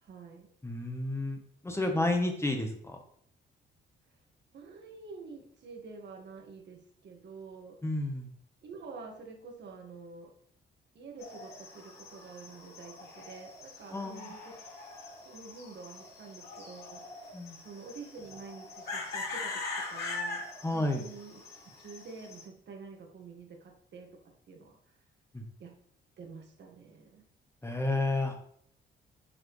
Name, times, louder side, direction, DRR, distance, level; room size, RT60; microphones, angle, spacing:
voice 1, 0.0-0.5 4.5-7.8 8.6-10.3 11.0-14.7 15.3-17.3 17.6-24.8 25.6-25.8 26.2-27.3, right 4 dB, 60° right, 2 dB, 1.8 m, -48 dB
voice 2, 0.6-1.4 1.6-3.0 7.8-8.3 13.9-14.3 17.3-17.6 20.6-21.0 25.3-25.4 27.6-28.3, left 2 dB, 15° left, 3 dB, 1.1 m, -31 dB
sound 1, 11.2-22.4, left 3 dB, 55° left, 2.9 m, -42 dB
8.7 x 4.8 x 3.2 m, 0.63 s
cardioid pair, 90°, 20 cm